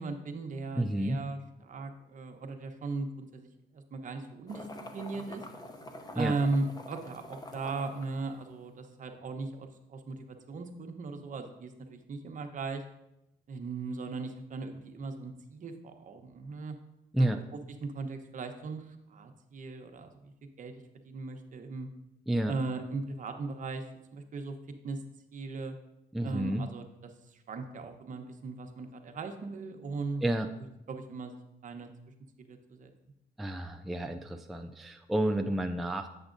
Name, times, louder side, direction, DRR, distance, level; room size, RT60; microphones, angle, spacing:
voice 1, 0.0-4.7 4.9-5.5 6.1-12.8 13.5-16.7 17.2-20.3 20.6-20.7 21.0-21.9 22.5-23.8 24.1-24.6 24.8-25.0 25.3-25.8 26.2-30.3 30.6-31.9 32.4-32.9, right 3 dB, 50° right, 5 dB, 0.9 m, -38 dB
voice 2, 0.8-1.2 6.1-6.3 17.1-17.4 22.3-22.5 26.1-26.6 30.2-30.5 33.4-36.1, right 1 dB, ahead, 5 dB, 0.4 m, -30 dB
sound 1, 4.5-8.9, left 1 dB, 20° left, 0.8 m, -46 dB
8.0 x 7.1 x 2.6 m, 0.87 s
cardioid pair, 100°, 17 cm